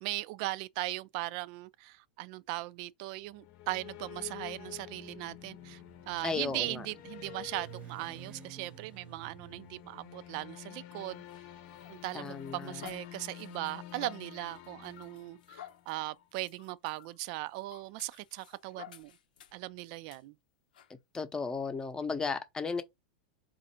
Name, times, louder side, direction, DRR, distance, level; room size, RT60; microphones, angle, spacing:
voice 1, 0.0-5.8 6.1-11.2 11.9-19.1 19.5-20.3, right 19 dB, 55° right, 0.4 m, -39 dB
sound 1, 3.2-16.0, left 13 dB, 55° left, 0.8 m, -49 dB
Motorcycle, 4.6-12.8, right 12 dB, 25° right, 0.8 m, -54 dB
voice 2, 6.2-6.9 12.1-12.8 21.1-22.8, left 4 dB, 15° left, 0.7 m, -35 dB
sound 2, 11.0-19.7 20.1-20.2 20.7-20.9, left 10 dB, 85° left, 0.8 m, -53 dB
4.2 x 2.5 x 4.3 m
hypercardioid pair, 115°, 5 cm